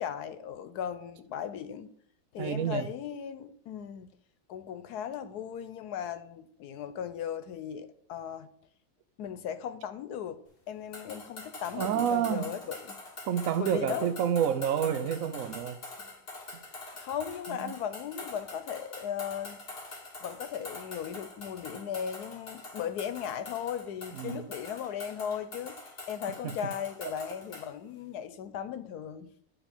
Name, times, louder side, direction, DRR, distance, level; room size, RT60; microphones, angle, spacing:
voice 1, 0.0-1.9 2.3-4.1 4.5-8.5 9.2-13.0 13.4-14.1 16.0-16.1 16.9-19.9 20.2-29.3, left 8 dB, 90° left, 1.3 m, -37 dB
voice 2, 2.4-2.9 11.8-12.5 13.3-15.8 16.5-16.6 17.5-17.7 24.2-24.5, right 9 dB, 65° right, 1.1 m, -29 dB
sound 1, 10.9-27.7, left 2 dB, 40° left, 1.9 m, -45 dB
9.6 x 3.6 x 7.1 m
omnidirectional pair, 1.6 m